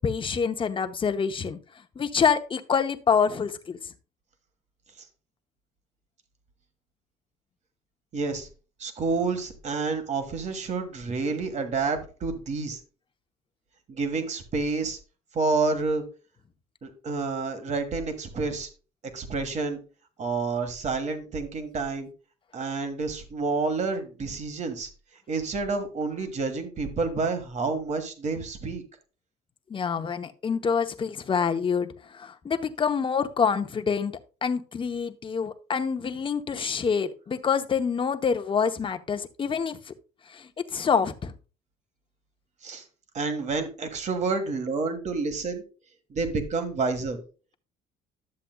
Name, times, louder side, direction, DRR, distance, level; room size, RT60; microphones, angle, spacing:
voice 1, 0.0-1.6 2.0-3.8 29.7-34.1 34.4-39.9 40.3-41.3, left 6 dB, 30° left, 7 dB, 0.8 m, -26 dB
voice 2, 8.1-8.5 8.8-12.8 13.9-15.0 15.3-16.0 16.8-18.7 19.1-19.8 20.2-22.1 22.5-24.9 25.3-28.8 42.6-42.8 43.1-45.6 46.1-47.2, right 4 dB, 45° right, 7 dB, 1.6 m, -29 dB
11.5 x 7.5 x 2.3 m, 0.34 s
cardioid pair, 110°, 17 cm